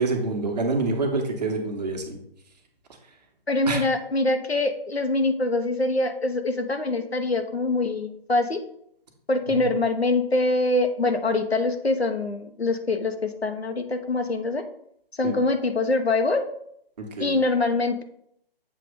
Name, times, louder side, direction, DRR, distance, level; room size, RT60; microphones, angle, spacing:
voice 1, 0.0-2.2 3.7-3.8 15.2-15.4 17.0-17.4, right 3 dB, 40° right, 3 dB, 1.3 m, -26 dB
voice 2, 3.5-8.6 9.3-14.6 15.2-16.4 17.2-18.0, left 2 dB, 85° left, 6 dB, 1.0 m, -24 dB
7.6 x 3.3 x 5.1 m, 0.70 s
figure-of-eight pair, 140°, 30 cm